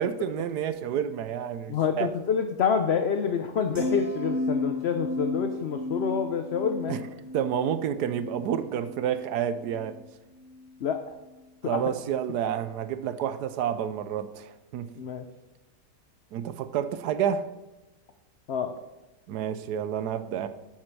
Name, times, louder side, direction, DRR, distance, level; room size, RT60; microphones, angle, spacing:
voice 1, 0.0-2.1 6.9-7.1 7.3-10.0 11.6-14.9 16.3-17.5 19.3-20.5, right 9 dB, 80° right, 12 dB, 1.2 m, -29 dB
voice 2, 1.7-6.9 10.8-11.0 11.6-11.8 15.0-15.2 18.5-18.7, left 6 dB, 60° left, 7 dB, 0.7 m, -27 dB
sound 1, 3.7-10.0 10.4-10.7, left 2 dB, 10° right, 3.4 m, -34 dB
10.5 x 7.5 x 4.6 m, 1.1 s
omnidirectional pair, 1.8 m